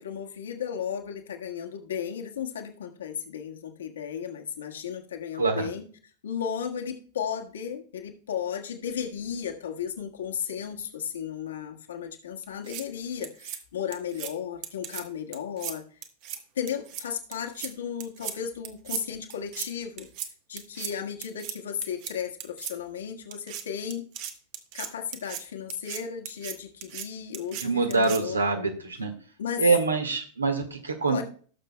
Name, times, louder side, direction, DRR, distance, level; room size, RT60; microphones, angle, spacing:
voice 1, 0.0-5.9 6.2-16.0 16.5-20.1 20.5-24.1 24.7-28.7 29.4-29.6 31.1-31.2, left 8 dB, 65° left, 3 dB, 1.5 m, -35 dB
voice 2, 5.4-5.7 27.6-29.1 29.6-31.2, right 3 dB, 75° right, 5 dB, 1.5 m, -25 dB
sound 1, 12.4-12.8 13.2-13.6 13.9-14.3 14.6-15.0 15.3-15.7 16.0-16.4 16.7-17.0 17.3-17.7 18.0-18.3 18.6-19.0 19.3-19.7 20.0-20.3 20.6-20.9 21.2-21.5 21.8-22.1 22.4-22.7 23.3-23.6 23.9-25.4 25.7-26.0 26.3-26.5 26.8-27.1 27.3-27.6 27.9-28.2, right 10 dB, 45° right, 1.1 m, -36 dB
18.0 x 6.7 x 2.2 m, 0.43 s
figure-of-eight pair, 90°, 0 cm